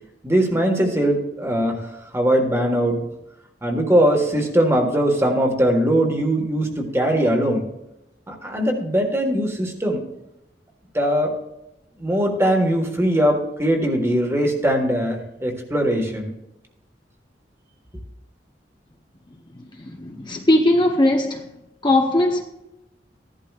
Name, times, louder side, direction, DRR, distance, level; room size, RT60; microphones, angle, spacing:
voice 1, 0.2-3.0 3.6-7.6 8.3-10.0 10.9-11.3 12.0-16.3, right 1 dB, 15° right, 1.5 m, -20 dB
voice 2, 19.8-21.5 21.8-22.4, left 1 dB, 25° left, 0.8 m, -19 dB
15.5 x 11.5 x 2.4 m
head